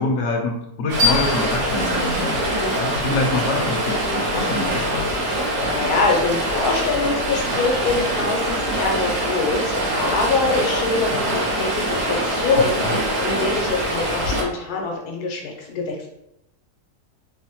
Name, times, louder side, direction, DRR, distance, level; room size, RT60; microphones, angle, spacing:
voice 1, 0.0-2.4 2.8-5.1, left 2 dB, 70° left, 2 dB, 0.9 m, -25 dB
Stream, 0.9-14.4, right 1 dB, 75° right, 1.2 m, -24 dB
sound 1, 1.0-3.8, left 3 dB, 40° right, 1.2 m, -27 dB
voice 2, 5.3-16.1, left 3 dB, 90° left, 1 dB, 1.2 m, -24 dB
3.2 x 2.1 x 2.7 m, 0.83 s
omnidirectional pair, 1.6 m